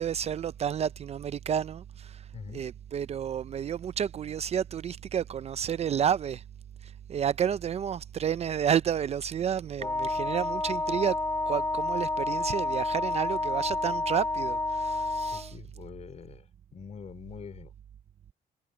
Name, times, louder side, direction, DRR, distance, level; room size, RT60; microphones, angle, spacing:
voice 1, 0.0-2.3 2.5-6.4 6.8-11.2 11.5-15.5, right 8 dB, 40° right, 0.5 m, -30 dB
voice 2, 2.3-2.6 15.3-17.7, left 7 dB, 40° left, 3.9 m, -45 dB
Wind instrument woodwind instrument, 9.8-15.5, left 2 dB, 15° left, 2.6 m, -30 dB
cardioid pair, 110°, 17 cm